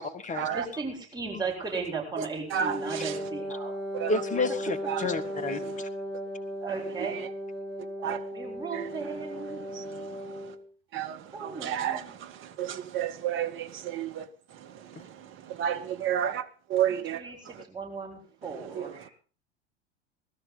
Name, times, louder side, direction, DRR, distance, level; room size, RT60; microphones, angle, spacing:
voice 1, 0.0-0.5 4.1-5.9, left 3 dB, 25° left, 1.9 m, -30 dB
voice 2, 0.5-3.8 6.6-7.2 8.0-9.6 11.3-12.2 16.9-19.1, right 4 dB, 15° right, 7.3 m, -36 dB
Wind instrument woodwind instrument, 2.5-10.6, equal, 55° right, 7.1 m, -36 dB
voice 3, 10.9-12.0 12.6-14.2 15.6-16.4 16.7-17.2 18.8-18.9, right 9 dB, 40° right, 1.8 m, -30 dB
20.0 x 13.0 x 4.1 m
figure-of-eight pair, 80°, 32 cm